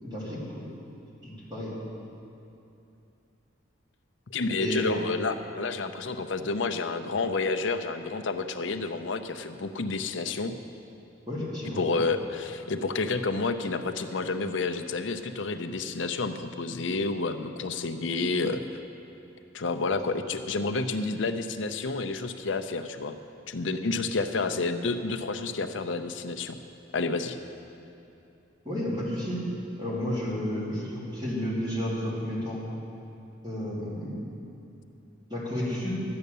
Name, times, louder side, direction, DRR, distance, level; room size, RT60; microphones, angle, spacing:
voice 1, 0.0-0.7 1.2-1.8 4.6-4.9 11.2-11.8 28.6-29.4 29.8-32.6 33.4-34.2 35.3-35.9, equal, 25° right, -7 dB, 3.1 m, -32 dB
voice 2, 4.3-10.5 11.8-18.6 19.5-23.2 23.5-26.6 26.9-27.4, left 3 dB, 70° left, 7 dB, 0.7 m, -30 dB
12.5 x 9.7 x 6.8 m, 2.8 s
head